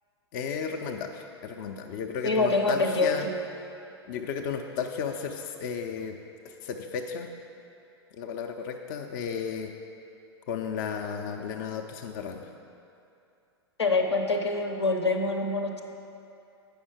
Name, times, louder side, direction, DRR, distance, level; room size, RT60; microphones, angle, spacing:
voice 1, 0.3-3.2 4.1-6.2 6.4-7.3 8.1-9.7 10.5-12.5, left 6 dB, 45° left, 3 dB, 0.5 m, -34 dB
voice 2, 2.2-3.3 13.8-15.8, left 3 dB, 80° left, 4 dB, 0.8 m, -25 dB
8.6 x 5.5 x 4.9 m, 2.7 s
figure-of-eight pair, 100°, 14 cm